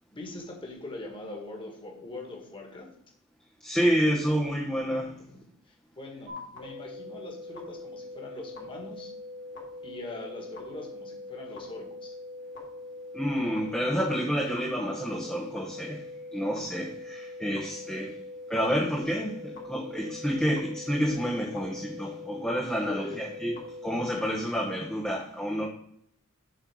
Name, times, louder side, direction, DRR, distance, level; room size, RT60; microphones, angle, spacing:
voice 1, 0.1-2.9 5.7-9.1 9.8-12.1 22.9-23.2, left 2 dB, 25° left, 0 dB, 1.8 m, -42 dB
voice 2, 3.6-5.2 13.1-18.2 18.5-25.7, equal, 5° left, -4 dB, 1.1 m, -29 dB
sound 1, 6.3-24.3, left 2 dB, 55° left, 2.5 m, -42 dB
7.8 x 4.4 x 6.3 m, 0.70 s
head